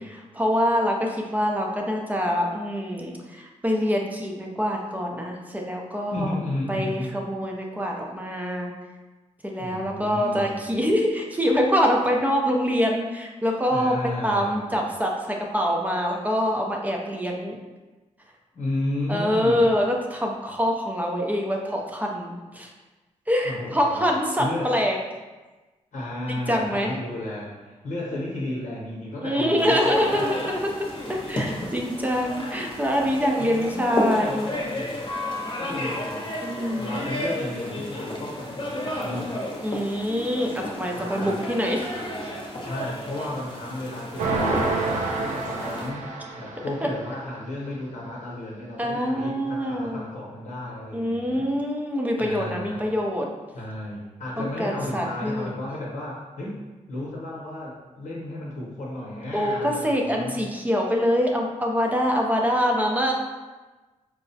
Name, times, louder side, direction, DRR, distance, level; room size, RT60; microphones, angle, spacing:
voice 1, 0.0-6.3 6.7-8.7 9.4-14.0 14.2-17.6 19.1-22.7 23.3-25.0 26.5-26.9 29.2-30.7 31.1-34.5 36.4-37.0 39.6-41.9 46.8-46.9 48.8-50.0 50.9-53.3 54.4-55.5 59.3-63.1, equal, 10° right, 0 dB, 0.5 m, -25 dB
voice 2, 6.1-7.1 9.6-10.7 13.7-14.9 18.5-19.6 23.4-24.1 24.4-24.7 25.9-30.3 33.4-35.0 35.6-36.4 36.8-39.3 40.9-41.4 42.6-51.4 52.2-52.8 53.5-56.6 56.9-60.5, left 1 dB, 80° left, -5 dB, 0.8 m, -33 dB
sound 1, 29.6-45.9, left 1 dB, 40° left, 0.8 m, -32 dB
sound 2, 44.2-46.9, right 3 dB, 80° right, 0.5 m, -27 dB
4.7 x 2.0 x 2.7 m, 1.2 s
cardioid pair, 95°, 13 cm